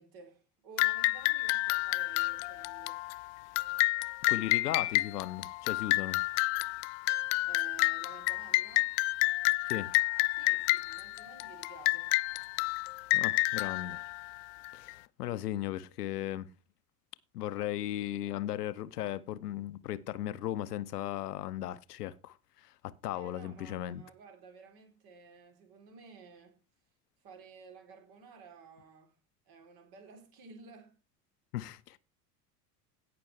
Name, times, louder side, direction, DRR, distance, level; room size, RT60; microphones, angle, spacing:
voice 1, 0.0-3.0 7.5-8.9 10.3-12.1 23.1-26.5 27.2-29.1 29.5-30.9, right 5 dB, 50° right, 3.8 m, -53 dB
sound 1, 0.8-14.9, left 23 dB, 50° left, 0.4 m, -30 dB
voice 2, 4.3-6.2 9.7-9.9 13.1-14.0 14.7-16.5 17.3-22.3 22.6-24.0 31.5-32.0, left 13 dB, 70° left, 0.8 m, -36 dB
17.5 x 6.1 x 3.3 m
figure-of-eight pair, 75°, 48 cm